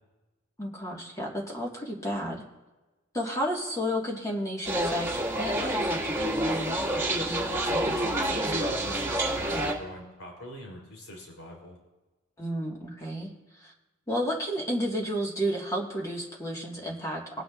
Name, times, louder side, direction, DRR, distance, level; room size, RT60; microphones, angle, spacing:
voice 1, 0.6-2.4 3.1-5.1 5.4-6.0 12.4-13.3 13.6-13.7 14.1-17.4, equal, 15° left, -2 dB, 1.5 m, -31 dB
sound 1, 4.6-9.7, right 1 dB, 15° right, 1.8 m, -28 dB
voice 2, 7.6-11.8, equal, 85° left, 0 dB, 3.5 m, -43 dB
20.0 x 9.9 x 2.4 m, 1.1 s
head